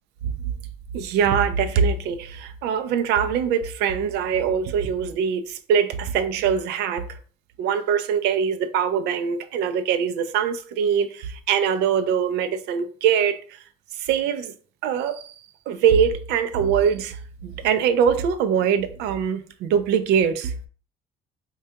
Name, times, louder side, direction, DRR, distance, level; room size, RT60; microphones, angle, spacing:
voice 1, 0.9-7.2 7.6-13.6 14.0-14.5 14.8-15.4 15.7-17.2 17.4-20.5, right 7 dB, 80° right, 0.4 m, -23 dB
4.5 x 2.2 x 2.8 m
cardioid pair, 110°, 17 cm